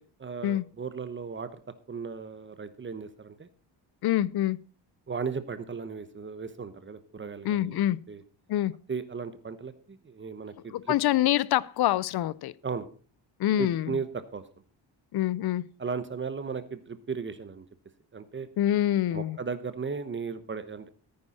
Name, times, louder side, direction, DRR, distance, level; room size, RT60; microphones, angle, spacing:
voice 1, 0.0-1.6 1.9-3.5 5.1-7.8 8.1-8.2 8.9-10.9 12.6-12.9 13.6-14.4 15.8-17.7 18.1-18.5 19.1-20.9, right 5 dB, 25° right, 1.0 m, -36 dB
voice 2, 4.0-4.6 7.4-8.0 8.5-8.7 10.7-12.5 13.4-13.9 15.1-15.6 18.6-19.4, left 13 dB, 60° left, 0.6 m, -25 dB
14.0 x 9.6 x 4.2 m
wide cardioid pair, 160°, 42 cm